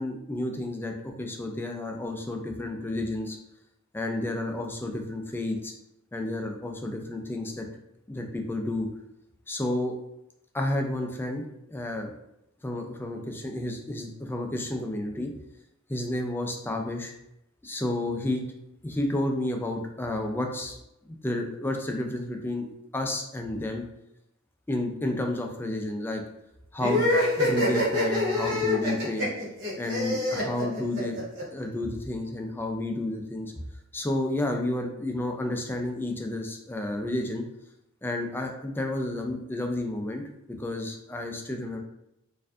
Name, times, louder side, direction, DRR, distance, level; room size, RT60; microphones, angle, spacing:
voice 1, 0.0-3.4 3.9-5.7 6.1-7.7 8.1-8.9 9.5-9.9 10.5-11.4 11.7-12.1 12.6-15.3 15.9-17.1 17.6-18.4 18.8-20.8 21.1-22.7 22.9-23.8 24.7-26.2 26.7-27.1 27.4-29.3 29.8-31.2 31.5-33.5 33.9-37.4 38.0-40.2 40.6-41.8, left 1 dB, 10° left, 2 dB, 0.4 m, -31 dB
sound 1, 26.8-31.4, left 1 dB, 60° right, 1.3 m, -25 dB
4.3 x 2.6 x 2.5 m, 0.85 s
head